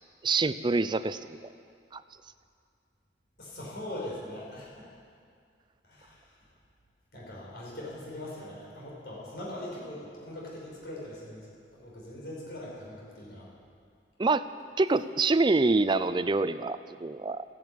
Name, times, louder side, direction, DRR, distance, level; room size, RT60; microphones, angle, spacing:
voice 1, 0.2-1.4 1.9-2.0 14.2-14.5 14.8-17.4, right 3 dB, 25° right, 13 dB, 0.4 m, -26 dB
voice 2, 3.4-4.9 5.8-6.4 7.1-13.5, left 1 dB, 65° left, -5 dB, 4.9 m, -41 dB
14.0 x 10.5 x 8.5 m, 2.3 s
head